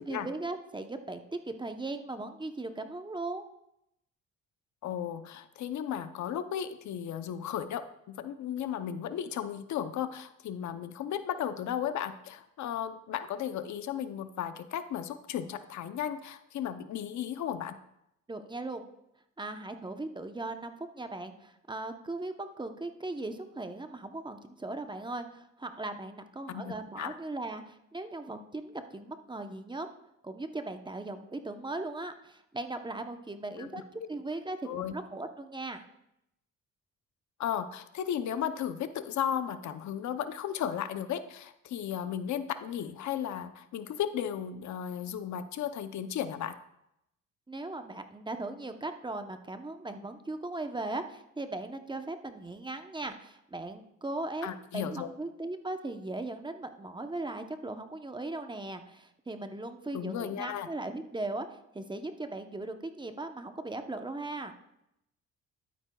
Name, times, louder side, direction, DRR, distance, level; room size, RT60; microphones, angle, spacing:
voice 1, 0.0-3.4 18.3-18.9 19.4-29.9 30.2-35.8 47.5-54.5 54.7-64.5, right 2 dB, 15° right, 7 dB, 0.8 m, -38 dB
voice 2, 4.8-17.8 26.5-27.1 33.6-33.8 34.7-34.9 37.4-46.6 54.4-55.1 59.9-60.7, left 9 dB, 70° left, 11 dB, 0.7 m, -35 dB
12.0 x 9.2 x 2.3 m, 0.81 s
cardioid pair, 90°, 30 cm